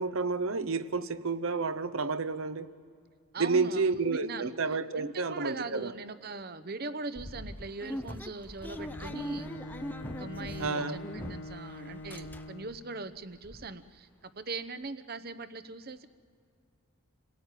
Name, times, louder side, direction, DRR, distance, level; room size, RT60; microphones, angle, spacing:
voice 1, 0.0-2.7 3.4-5.9 10.6-11.0, right 4 dB, 70° right, 12 dB, 0.9 m, -30 dB
voice 2, 3.3-3.9 4.2-4.5 4.9-9.5 10.2-14.1 14.4-16.1, right 3 dB, 45° right, 12 dB, 0.9 m, -40 dB
sound 1, 7.2-11.6 11.9-12.8 13.2-13.3 13.4-13.7, equal, 10° left, 0.5 m, -41 dB
Bowed string instrument, 8.7-12.9, left 1 dB, 50° left, 0.6 m, -43 dB
27.5 x 18.0 x 9.2 m, 2.2 s
head